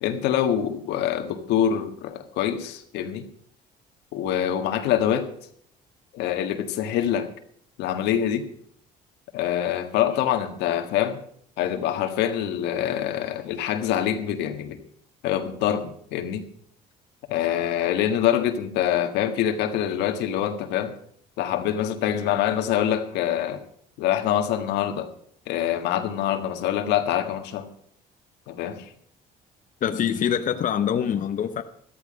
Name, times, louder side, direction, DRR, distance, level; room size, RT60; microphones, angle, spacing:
voice 1, 0.0-3.3 4.1-5.3 6.1-7.3 7.8-8.4 9.3-11.2 11.6-14.8 15.2-16.4 17.3-20.9 21.4-23.6 24.0-25.1 25.5-27.7 28.5-28.9, left 10 dB, 90° left, 7 dB, 1.6 m, -25 dB
voice 2, 29.8-31.6, left 9 dB, 50° left, 8 dB, 0.9 m, -24 dB
13.5 x 13.0 x 5.2 m, 0.63 s
cardioid pair, 110°, 17 cm